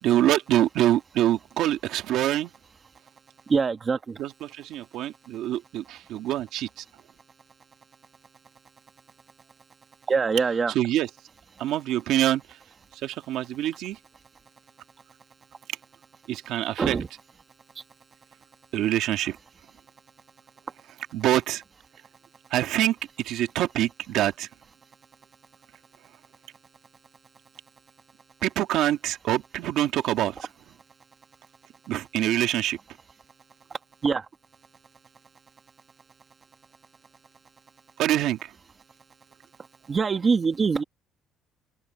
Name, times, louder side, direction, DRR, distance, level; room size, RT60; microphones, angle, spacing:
voice 1, 0.0-2.5 4.2-6.8 10.8-11.1 11.6-12.4 13.0-14.0 16.3-17.0 18.7-19.4 21.1-21.6 22.5-24.5 28.4-30.4 31.9-32.8 38.0-38.5, right 13 dB, 65° right, 1.8 m, -25 dB
voice 2, 3.5-4.2 10.1-10.7 16.8-17.1 34.0-34.3 39.9-40.8, right 5 dB, 25° right, 1.1 m, -23 dB
open air
cardioid pair, 165°, 0 cm